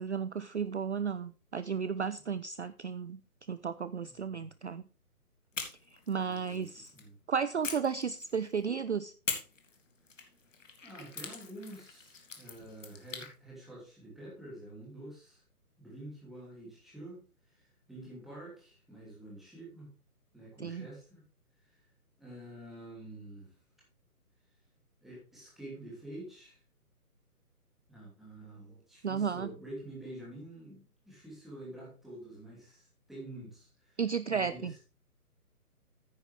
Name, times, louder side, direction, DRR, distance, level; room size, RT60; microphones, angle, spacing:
voice 1, 0.0-3.2 3.5-4.8 6.1-6.9 7.3-9.1 20.6-20.9 29.0-29.5 34.0-34.7, right 6 dB, 50° right, 14 dB, 0.5 m, -33 dB
voice 2, 4.0-4.5 6.1-6.7 6.9-7.2 10.8-15.4 15.8-17.2 17.5-19.9 20.3-21.2 22.2-23.5 25.0-26.6 27.9-34.0 34.3-34.7, right 1 dB, ahead, -6 dB, 2.8 m, -48 dB
sound 1, 5.5-7.1 7.6-8.7 9.3-13.3, left 4 dB, 55° left, 2.3 m, -43 dB
9.7 x 9.4 x 3.4 m, 0.34 s
figure-of-eight pair, 140°, 45 cm